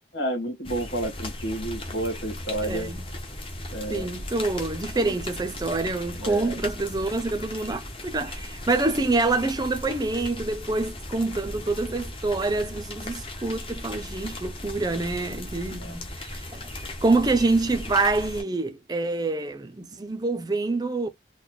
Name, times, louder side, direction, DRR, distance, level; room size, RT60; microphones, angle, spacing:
voice 1, 0.1-2.9 3.7-4.1 4.9-5.1 6.2-6.6 15.7-15.9, right 1 dB, 80° left, 1.6 m, -31 dB
sound 1, 0.6-18.4, left 1 dB, 30° left, 0.8 m, -37 dB
voice 2, 2.6-3.0 3.9-16.7 17.0-21.1, right 3 dB, 20° right, 0.5 m, -26 dB
4.0 x 2.2 x 3.0 m
head